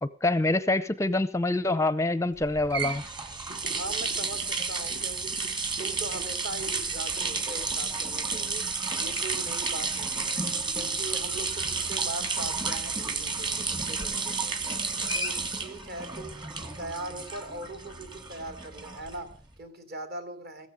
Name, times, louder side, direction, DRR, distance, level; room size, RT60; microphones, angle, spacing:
voice 1, 0.0-3.0, left 2 dB, 15° left, 15 dB, 0.6 m, -26 dB
sound 1, 2.4-19.4, right 4 dB, 25° right, 1.8 m, -31 dB
Thunder, 3.2-11.9 12.1-16.4 16.7-16.9 18.0-18.7, equal, 80° right, 4.9 m, -53 dB
voice 2, 3.7-5.4 5.8-8.7 9.0-10.5 10.7-14.6 15.1-20.7, right 2 dB, 50° right, 8 dB, 3.0 m, -40 dB
16.0 x 14.0 x 5.1 m, 0.40 s
head